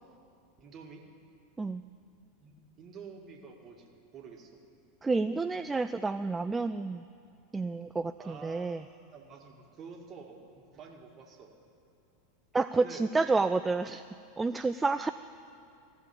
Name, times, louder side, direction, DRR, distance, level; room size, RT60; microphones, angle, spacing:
voice 1, 0.6-1.1 2.4-4.6 8.2-11.5 12.7-13.1, right 5 dB, 35° right, 2 dB, 2.0 m, -49 dB
voice 2, 5.0-7.0 7.5-8.8 12.5-14.0 14.4-15.1, right 3 dB, 15° right, 11 dB, 0.3 m, -29 dB
15.5 x 7.1 x 9.8 m, 2.7 s
figure-of-eight pair, 85°, 0 cm